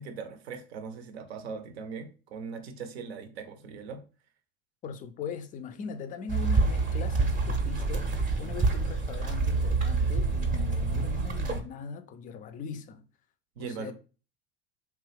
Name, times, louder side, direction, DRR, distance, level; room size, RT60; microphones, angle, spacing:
voice 1, 0.0-4.0 13.6-13.9, right 5 dB, 75° right, 0.6 m, -40 dB
voice 2, 4.8-13.0 13.6-13.9, left 5 dB, 25° left, 0.3 m, -40 dB
sound 1, 6.3-11.6, right 3 dB, 25° right, 0.6 m, -27 dB
2.8 x 2.3 x 3.3 m
hypercardioid pair, 85°, 32 cm